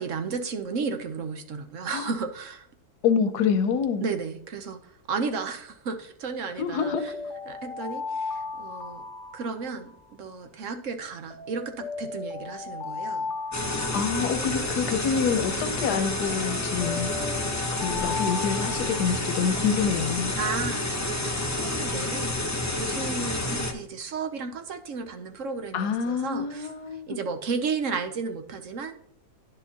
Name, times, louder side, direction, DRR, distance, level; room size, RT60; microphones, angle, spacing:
voice 1, 0.0-2.7 4.0-7.1 7.5-9.0 9.3-13.3 20.4-26.7 27.1-29.0, right 5 dB, 60° right, 1.0 m, -33 dB
voice 2, 3.0-4.0 6.6-7.0 13.9-17.1 17.7-20.3 25.7-27.2, left 6 dB, 90° left, 1.4 m, -26 dB
Alarm, 6.8-10.1 11.3-15.1 16.3-19.6, left 4 dB, 50° left, 1.3 m, -36 dB
sound 1, 13.5-23.7, left 2 dB, 15° left, 0.7 m, -29 dB
10.5 x 6.8 x 2.9 m
omnidirectional pair, 1.7 m